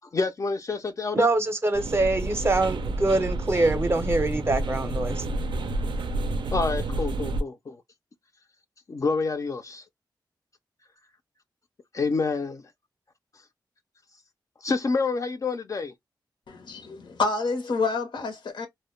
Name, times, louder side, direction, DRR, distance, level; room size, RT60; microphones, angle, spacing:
voice 1, 0.1-1.3 6.5-7.8 8.9-9.8 11.9-12.7 14.6-15.9, left 4 dB, 45° left, 0.4 m, -28 dB
voice 2, 1.1-5.3, right 2 dB, 30° right, 0.5 m, -24 dB
sound 1, 1.7-7.4, right 2 dB, 85° right, 0.3 m, -29 dB
voice 3, 16.5-18.7, left 3 dB, 80° left, 0.7 m, -28 dB
2.1 x 2.1 x 2.9 m
wide cardioid pair, 105°, 8 cm